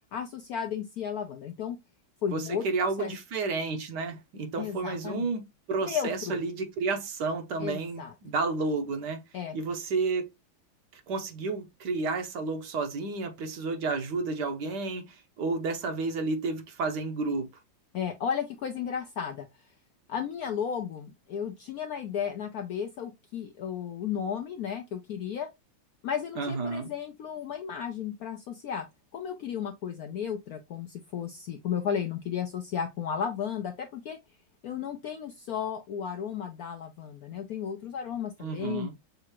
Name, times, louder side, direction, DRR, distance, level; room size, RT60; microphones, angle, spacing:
voice 1, 0.1-1.8 2.2-3.1 4.6-5.3 5.8-6.4 7.6-8.1 9.3-9.6 17.9-19.5 20.1-25.5 26.0-28.9 29.1-34.2 34.6-38.9, left 8 dB, 75° left, 0.8 m, -34 dB
voice 2, 2.3-9.2 9.5-10.3 10.9-17.5 26.4-26.9 38.4-38.9, right 3 dB, 65° right, 1.3 m, -31 dB
6.5 x 2.5 x 2.9 m
omnidirectional pair, 2.1 m